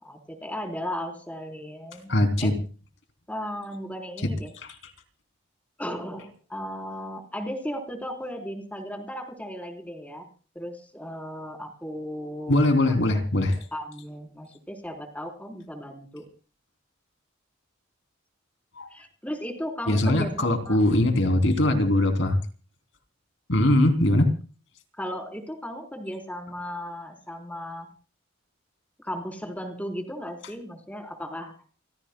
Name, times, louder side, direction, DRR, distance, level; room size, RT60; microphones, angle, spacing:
voice 1, 0.0-2.1 2.4-2.6 3.3-4.5 5.8-10.3 10.6-12.9 13.7-16.3 18.9-20.8 25.0-27.9 29.0-31.5, equal, 5° left, 4 dB, 3.8 m, -36 dB
voice 2, 2.1-2.5 4.2-4.3 4.6-4.7 12.5-13.6 18.8-18.9 19.9-22.4 23.5-24.3, left 1 dB, 65° left, 6 dB, 3.1 m, -21 dB
29.5 x 17.5 x 2.3 m, 0.37 s
head